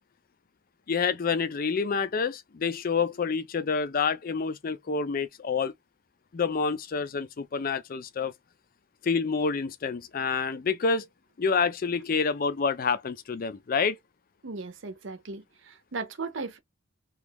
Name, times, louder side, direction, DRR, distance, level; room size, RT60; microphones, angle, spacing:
voice 1, 0.9-5.7 6.3-8.3 9.0-11.1 11.4-14.0, left 5 dB, 45° left, 0.4 m, -28 dB
voice 2, 14.4-15.4 15.9-16.6, right 4 dB, 65° right, 0.7 m, -36 dB
3.1 x 2.3 x 3.4 m
head